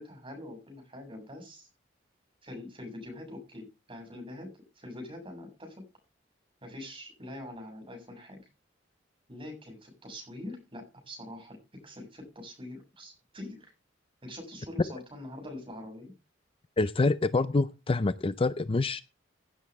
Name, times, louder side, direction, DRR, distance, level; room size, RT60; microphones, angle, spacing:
voice 1, 0.0-1.7 2.4-5.8 6.6-8.4 9.3-13.7 14.2-16.1, left 1 dB, 30° right, 3 dB, 7.2 m, -44 dB
voice 2, 16.8-19.0, left 3 dB, 30° left, 14 dB, 0.5 m, -26 dB
16.5 x 8.5 x 3.6 m, 0.28 s
head